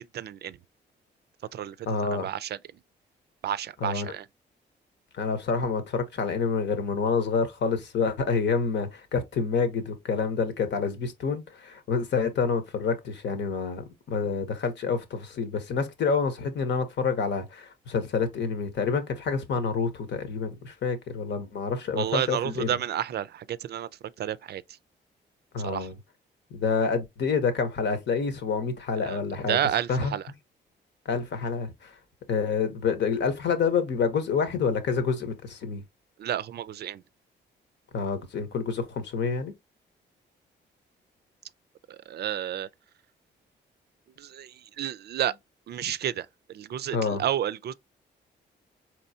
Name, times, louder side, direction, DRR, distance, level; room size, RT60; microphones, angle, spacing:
voice 1, 0.1-0.6 1.5-1.8 2.2-2.6 3.4-4.2 21.9-23.9 24.2-24.6 25.6-25.9 29.0-29.2 29.5-30.2 36.2-37.0 41.9-42.7 44.2-45.3 45.7-47.7, right 10 dB, 60° right, 0.4 m, -30 dB
voice 2, 1.9-2.3 3.8-4.1 5.1-22.8 25.5-26.0 26.5-29.6 29.9-30.1 31.0-31.9 32.3-35.8 37.9-39.5 45.8-45.9 46.9-47.2, left 5 dB, 70° left, 1.1 m, -28 dB
4.2 x 3.1 x 2.7 m
cardioid pair, 65°, 19 cm